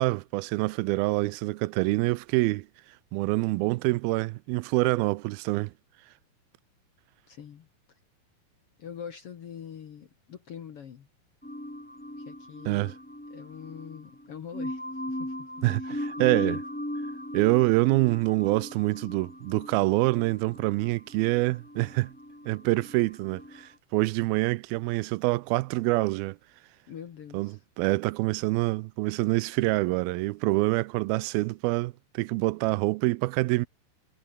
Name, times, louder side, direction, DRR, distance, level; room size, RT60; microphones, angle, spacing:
voice 1, 0.0-2.7 3.1-5.7 12.7-12.9 15.6-16.6 17.3-22.1 22.5-26.4 27.3-33.7, right 21 dB, 85° right, 2.5 m, -26 dB
voice 2, 7.3-7.7 8.8-11.1 12.2-12.9 13.3-15.5 15.8-16.6 26.9-27.6, left 8 dB, 55° left, 1.8 m, -44 dB
sound 1, 11.4-23.7, left 1 dB, 5° left, 1.4 m, -38 dB
omnidirectional pair, 4.3 m